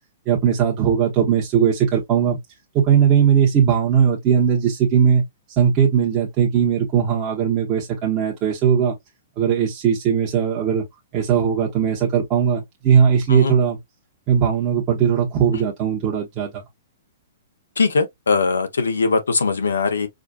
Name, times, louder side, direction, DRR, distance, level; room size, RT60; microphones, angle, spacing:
voice 1, 0.3-2.4 2.7-5.2 5.6-8.9 9.4-10.8 11.1-13.8 14.3-16.6, right 8 dB, 35° right, 1.1 m, -18 dB
voice 2, 17.8-20.1, left 4 dB, 90° left, 0.9 m, -20 dB
4.9 x 2.4 x 2.4 m
hypercardioid pair, 125°, 0 cm